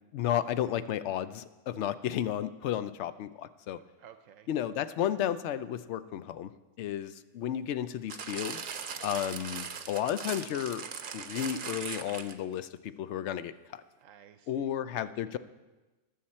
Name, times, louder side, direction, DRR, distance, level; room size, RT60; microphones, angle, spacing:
voice 1, 0.1-3.8 4.5-6.5 6.8-8.6 9.0-10.8 11.1-13.8 14.5-15.4, left 10 dB, 70° left, 14 dB, 0.9 m, -33 dB
voice 2, 4.0-4.5 8.9-9.2 14.0-15.4, right 9 dB, 90° right, 9 dB, 1.0 m, -56 dB
sound 1, 8.1-12.5 13.3-13.4, right 6 dB, 50° right, 0.7 m, -40 dB
21.5 x 7.5 x 4.3 m, 1.1 s
omnidirectional pair, 1.3 m